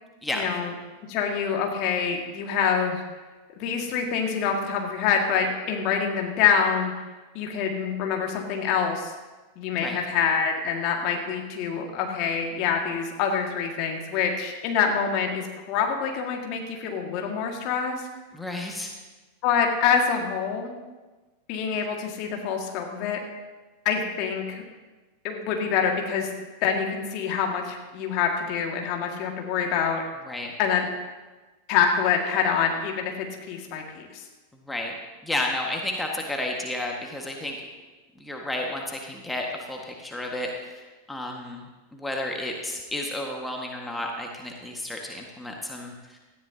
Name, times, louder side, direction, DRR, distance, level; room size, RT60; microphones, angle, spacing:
voice 1, 0.3-0.7 1.1-3.0 3.6-7.1 7.3-9.1 9.6-18.0 19.4-20.7 21.5-23.2 23.8-24.6 25.2-26.3 26.6-30.0 30.6-30.9 31.7-34.2, left 6 dB, 40° left, 2 dB, 2.0 m, -26 dB
voice 2, 18.3-18.9 30.3-30.5 34.6-35.0 35.2-37.6 38.1-41.6 41.9-46.2, left 1 dB, 5° left, 0 dB, 1.7 m, -32 dB
18.0 x 14.0 x 2.9 m, 1.2 s
figure-of-eight pair, 90°, 0 cm